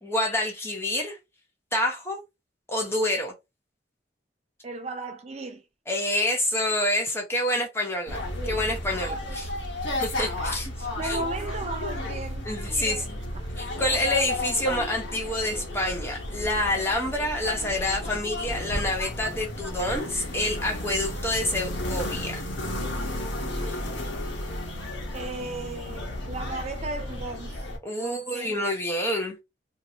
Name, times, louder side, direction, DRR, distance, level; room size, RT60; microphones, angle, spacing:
voice 1, 0.0-1.2 1.7-2.2 2.7-3.3 5.9-9.4 10.0-11.2 12.5-13.0 13.6-22.4 23.7-23.8 27.8-29.4, left 1 dB, 15° left, 0.8 m, -27 dB
voice 2, 4.6-5.6 9.0-9.4 10.3-10.6 11.0-13.1 25.1-27.7 28.0-28.6, right 2 dB, 35° right, 0.4 m, -36 dB
sound 1, 8.1-27.8, left 1 dB, 85° left, 1.0 m, -33 dB
2.9 x 2.6 x 2.8 m
head